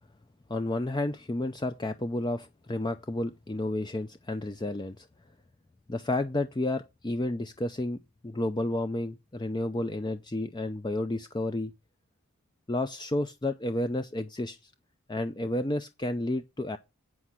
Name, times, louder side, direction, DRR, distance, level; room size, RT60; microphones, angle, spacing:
voice 1, 0.5-5.1 5.9-11.7 12.7-14.7 15.1-16.8, left 1 dB, 20° left, 0.4 m, -31 dB
8.3 x 6.3 x 5.6 m
head